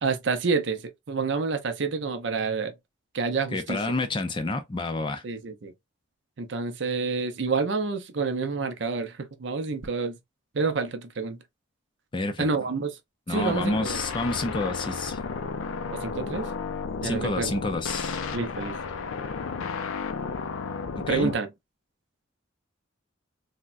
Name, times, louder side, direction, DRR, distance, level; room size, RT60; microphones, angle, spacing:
voice 1, 0.0-2.7 3.1-3.8 5.2-5.7 6.4-10.2 10.5-11.4 12.4-13.0 13.3-14.0 15.9-16.5 17.0-17.5 18.3-18.8 21.1-21.5, right 4 dB, 60° right, 0.5 m, -28 dB
voice 2, 3.5-5.2 12.1-12.5 13.3-15.2 17.0-18.2 21.1-21.3, left 2 dB, 25° left, 0.4 m, -29 dB
sound 1, 13.4-21.4, left 5 dB, 80° left, 0.5 m, -33 dB
3.5 x 2.1 x 2.5 m
head